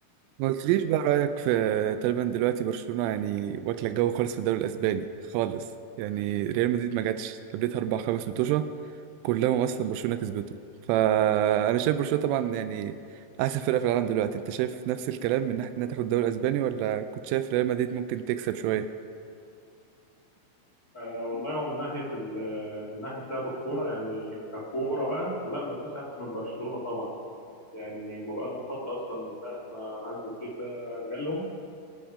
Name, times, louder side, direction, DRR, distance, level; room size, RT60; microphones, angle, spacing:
voice 1, 0.4-5.7 6.0-8.7 9.2-10.6 10.9-13.0 13.4-18.9, right 11 dB, 85° right, 10 dB, 3.0 m, -27 dB
voice 2, 20.9-27.1 27.7-31.5, equal, 70° left, -5 dB, 0.8 m, -34 dB
22.5 x 7.9 x 4.9 m, 2.5 s
omnidirectional pair, 5.9 m